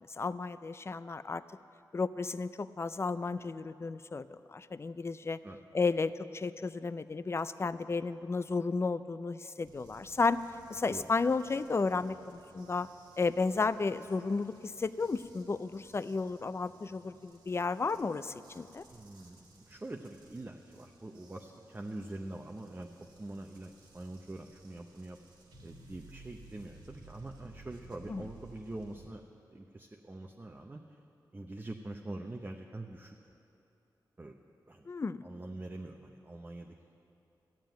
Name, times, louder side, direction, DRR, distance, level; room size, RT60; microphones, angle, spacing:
voice 1, 0.2-1.4 1.9-5.4 5.7-10.4 10.7-12.9 13.2-18.8 28.1-28.2 34.9-35.2, left 4 dB, 35° left, 14 dB, 0.4 m, -33 dB
sound 1, 9.6-29.1, right 2 dB, 90° right, 1.9 m, -58 dB
voice 2, 18.9-25.2 25.6-29.2 29.5-31.0 31.3-33.2 34.2-34.4 34.7-34.9 35.2-36.9, right 2 dB, 25° right, 2 dB, 0.7 m, -44 dB
14.5 x 7.5 x 9.2 m, 2.7 s
cardioid pair, 75°, 8 cm